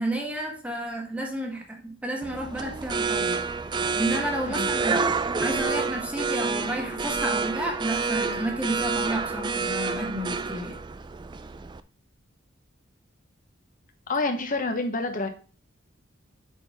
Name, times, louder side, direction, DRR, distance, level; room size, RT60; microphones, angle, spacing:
voice 1, 0.0-3.4 3.9-10.8, right 1 dB, 5° right, 1 dB, 1.2 m, -31 dB
sound 1, 2.2-11.8, right 4 dB, 20° right, 0.3 m, -28 dB
voice 2, 14.1-15.3, left 3 dB, 45° left, 5 dB, 1.0 m, -27 dB
7.7 x 3.9 x 4.1 m, 0.37 s
head